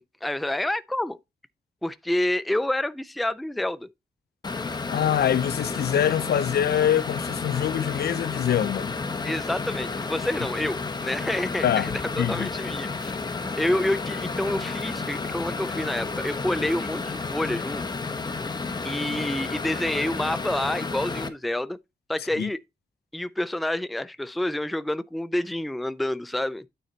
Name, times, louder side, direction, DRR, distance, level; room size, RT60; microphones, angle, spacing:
voice 1, 0.2-1.2 1.8-3.9 9.2-11.9 12.2-13.1 13.6-17.8 18.8-21.8 22.1-22.6 23.1-26.7, left 1 dB, ahead, 0.4 m, -28 dB
sound 1, 4.4-21.3, left 4 dB, 25° left, 0.9 m, -31 dB
voice 2, 4.9-9.0 11.6-11.9 12.2-12.5 22.4-22.5, left 10 dB, 75° left, 0.5 m, -24 dB
9.3 x 4.3 x 3.9 m
wide cardioid pair, 150°, 17 cm